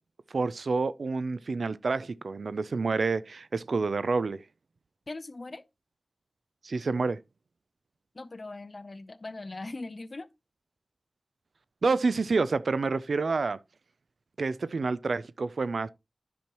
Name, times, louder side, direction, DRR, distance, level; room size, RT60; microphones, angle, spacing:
voice 1, 0.3-4.4 6.6-7.2 11.8-13.6 14.4-15.9, right 4 dB, 85° right, 0.4 m, -28 dB
voice 2, 5.1-5.6 8.1-10.3, left 2 dB, 50° left, 0.6 m, -40 dB
10.5 x 6.1 x 2.9 m
wide cardioid pair, 55°, 0 cm